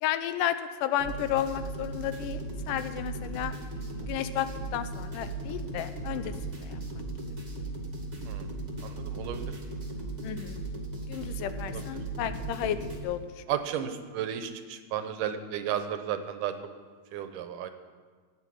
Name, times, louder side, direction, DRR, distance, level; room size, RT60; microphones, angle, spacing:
voice 1, 0.0-2.4 2.7-3.5 4.0-4.5 4.7-6.8 10.2-10.6 11.1-13.4, left 11 dB, 80° left, 11 dB, 2.2 m, -32 dB
sound 1, 1.0-13.0, right 2 dB, 20° right, 1.4 m, -37 dB
voice 2, 8.8-9.6 11.7-12.0 13.5-16.5 17.1-17.7, right 9 dB, 80° right, 8 dB, 2.4 m, -33 dB
14.5 x 9.0 x 7.6 m, 1.5 s
omnidirectional pair, 3.8 m